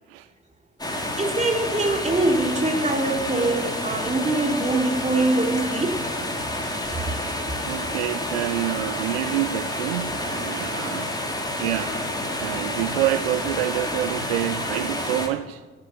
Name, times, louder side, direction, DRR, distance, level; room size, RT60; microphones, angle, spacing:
sound 1, 0.8-15.3, left 1 dB, 10° left, 3.5 m, -29 dB
voice 1, 1.2-6.0, right 2 dB, 20° right, 3.7 m, -23 dB
voice 2, 7.6-11.2 11.6-15.6, right 15 dB, 70° right, 0.5 m, -28 dB
14.0 x 10.5 x 9.4 m
figure-of-eight pair, 45°, 32 cm